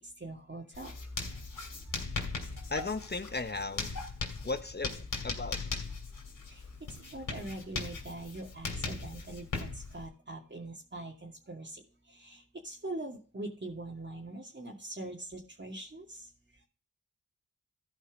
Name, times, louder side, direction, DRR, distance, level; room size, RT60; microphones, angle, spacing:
voice 1, 0.2-0.9 1.8-2.2 6.5-6.6 7.1-11.8 12.1-16.3, right 2 dB, 35° right, 2.5 m, -43 dB
Writing, 0.7-10.1, left 4 dB, 75° left, 2.7 m, -39 dB
voice 2, 2.7-3.9 4.4-5.6, left 3 dB, 30° left, 1.2 m, -36 dB
14.0 x 5.2 x 5.2 m
cardioid pair, 45°, 32 cm